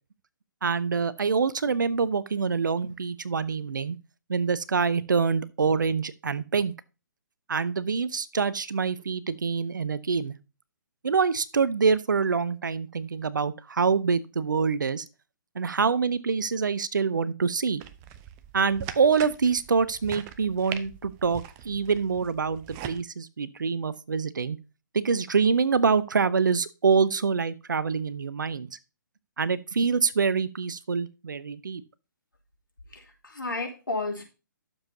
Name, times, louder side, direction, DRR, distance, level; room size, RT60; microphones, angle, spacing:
voice 1, 0.6-4.0 4.3-6.7 7.5-10.3 11.0-15.0 15.5-17.8 18.5-24.6 24.9-28.8 29.4-31.8, right 5 dB, 65° right, 0.7 m, -25 dB
sound 1, 17.8-23.0, right 10 dB, 25° right, 0.6 m, -41 dB
voice 2, 32.9-34.2, left 3 dB, 80° left, 3.1 m, -32 dB
12.0 x 7.2 x 2.7 m
figure-of-eight pair, 130°, 11 cm